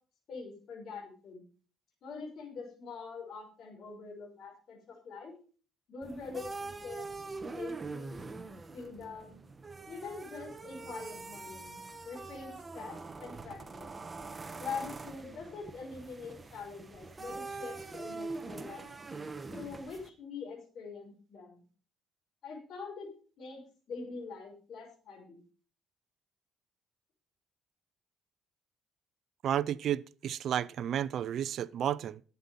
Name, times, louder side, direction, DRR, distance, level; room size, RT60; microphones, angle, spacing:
voice 1, 0.3-1.4 2.0-5.4 5.9-7.1 7.5-8.2 8.7-9.4 9.9-13.9 14.6-18.9 19.5-21.6 22.4-23.1 23.4-23.6 23.9-25.4, left 4 dB, 60° left, 5.6 m, -44 dB
sound 1, 6.0-20.1, right 3 dB, 20° right, 1.1 m, -44 dB
voice 2, 29.4-32.2, right 10 dB, 60° right, 0.5 m, -32 dB
12.0 x 8.3 x 5.5 m
cardioid pair, 110°, 0 cm